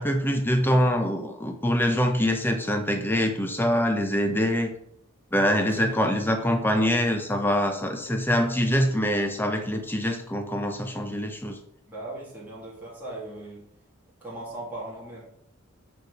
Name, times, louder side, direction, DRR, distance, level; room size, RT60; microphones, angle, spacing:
voice 1, 0.0-4.7 5.3-11.6, equal, 10° left, 5 dB, 0.8 m, -24 dB
voice 2, 5.8-6.5 6.7-7.0 11.9-13.6 14.2-15.3, right 1 dB, 10° right, -7 dB, 2.2 m, -38 dB
7.9 x 4.5 x 4.7 m, 0.72 s
head